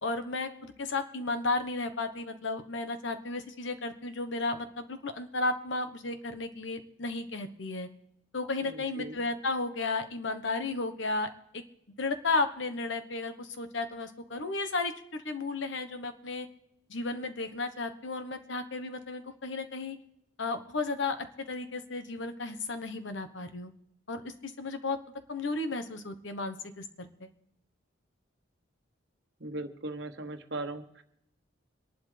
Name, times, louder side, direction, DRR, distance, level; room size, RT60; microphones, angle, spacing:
voice 1, 0.0-7.9 8.3-11.6 12.0-16.5 16.9-20.0 20.4-23.7 24.1-25.0 25.3-27.3, left 3 dB, 70° left, 9 dB, 1.2 m, -34 dB
voice 2, 8.6-9.2 29.4-31.0, right 2 dB, 60° right, 7 dB, 1.2 m, -39 dB
26.5 x 11.5 x 3.4 m, 0.79 s
head